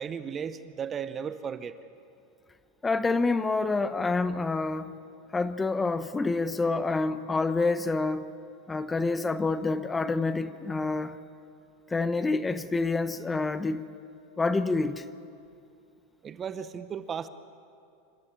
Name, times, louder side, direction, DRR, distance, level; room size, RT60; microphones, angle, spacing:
voice 1, 0.0-1.8 16.2-17.3, right 7 dB, 25° right, 13 dB, 0.9 m, -35 dB
voice 2, 2.8-4.9 5.3-8.3 8.7-11.2 11.9-13.8 14.4-15.0, left 3 dB, 15° left, 13 dB, 0.9 m, -27 dB
27.0 x 14.0 x 8.9 m, 2.5 s
supercardioid pair, 125°, 0 cm